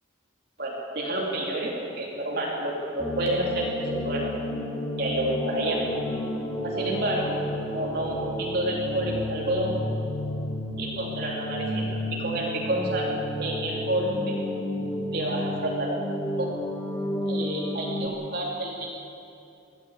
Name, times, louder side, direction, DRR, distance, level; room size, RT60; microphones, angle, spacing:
voice 1, 0.6-4.3 5.0-5.8 6.6-7.4 7.7-9.8 10.8-13.1 13.4-14.3 15.1-16.0 16.4-16.5 17.3-18.9, right 1 dB, 50° right, -3 dB, 3.2 m, -29 dB
sound 1, 3.0-18.1, left 1 dB, 15° left, 1.6 m, -31 dB
22.0 x 14.5 x 8.1 m, 2.6 s
head